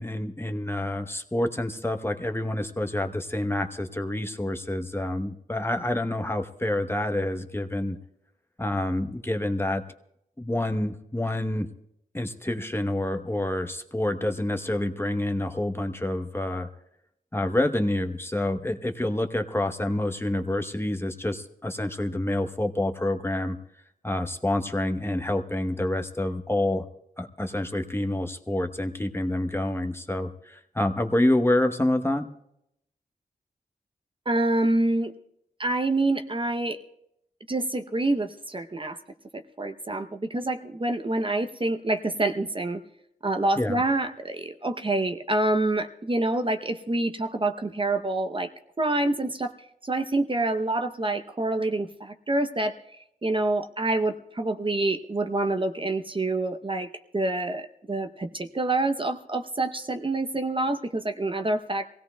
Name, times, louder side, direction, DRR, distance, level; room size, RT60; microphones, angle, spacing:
voice 1, 0.0-8.0 8.6-9.8 10.4-11.7 12.1-16.7 17.3-23.6 24.0-26.9 27.2-32.3 43.6-43.8, left 1 dB, 15° left, 6 dB, 0.9 m, -27 dB
voice 2, 34.3-35.1 35.6-36.8 37.5-39.0 39.3-42.8 43.2-48.5 48.8-49.5 49.8-52.8 53.2-61.9, right 2 dB, 30° right, 6 dB, 0.7 m, -27 dB
25.0 x 17.0 x 2.2 m, 0.78 s
wide cardioid pair, 70°, 17 cm